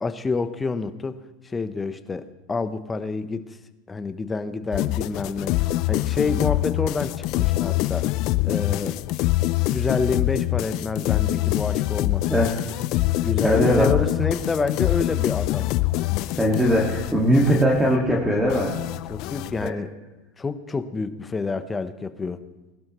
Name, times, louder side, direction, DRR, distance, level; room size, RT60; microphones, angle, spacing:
voice 1, 0.0-1.2 1.4-3.6 3.9-5.6 5.9-8.1 8.4-9.0 9.7-12.4 13.2-15.7 19.1-19.9 20.4-22.4, left 4 dB, 15° left, 10 dB, 0.9 m, -28 dB
sound 1, 4.7-19.7, left 17 dB, 55° left, 0.4 m, -25 dB
voice 2, 13.2-13.9 16.4-18.7 19.6-19.7, equal, 5° right, -2 dB, 2.0 m, -20 dB
20.0 x 12.0 x 3.1 m, 1.1 s
supercardioid pair, 125°, 0 cm